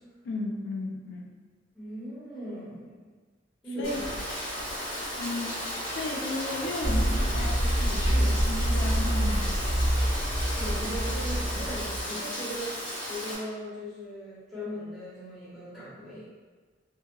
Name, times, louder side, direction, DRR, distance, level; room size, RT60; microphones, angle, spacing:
voice 1, 0.2-1.3 3.8-4.0 5.2-5.5 5.9-9.5, left 2 dB, 65° left, 0 dB, 0.4 m, -34 dB
voice 2, 1.7-3.2 3.6-4.1 10.5-12.8 13.1-16.3, equal, ahead, -13 dB, 1.3 m, -38 dB
Rain, 3.8-13.3, equal, 30° left, 1.4 m, -34 dB
sound 1, 6.8-12.0, equal, 30° right, 0.4 m, -26 dB
2.7 x 2.7 x 2.2 m, 1.4 s
head